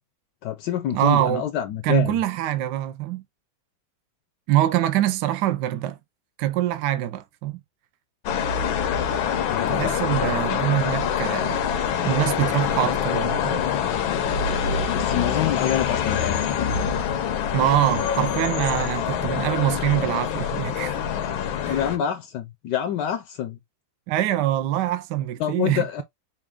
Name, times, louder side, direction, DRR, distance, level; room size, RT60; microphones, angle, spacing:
voice 1, 0.4-2.2 9.4-10.0 14.6-16.4 21.6-23.6 25.4-26.0, left 10 dB, 70° left, 1.1 m, -27 dB
voice 2, 0.9-1.4 1.8-3.2 4.5-6.0 6.4-7.6 9.7-11.6 12.0-13.6 17.5-21.0 21.7-21.8 24.1-26.0, right 13 dB, 70° right, 1.1 m, -24 dB
sound 1, 8.3-22.0, left 8 dB, 90° left, 1.6 m, -25 dB
5.8 x 2.3 x 3.6 m
omnidirectional pair, 2.1 m